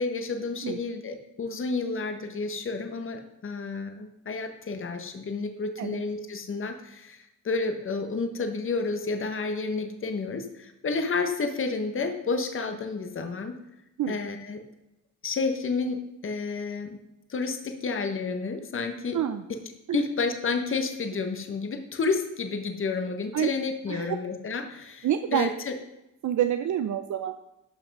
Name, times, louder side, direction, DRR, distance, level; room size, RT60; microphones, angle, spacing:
voice 1, 0.0-13.5 14.1-14.6 15.2-17.0 17.3-19.2 19.9-25.7, left 4 dB, 40° left, 6 dB, 1.2 m, -30 dB
voice 2, 25.0-25.5 26.2-27.3, right 10 dB, 65° right, 8 dB, 0.7 m, -27 dB
12.0 x 5.9 x 5.4 m, 0.90 s
cardioid pair, 125°, 32 cm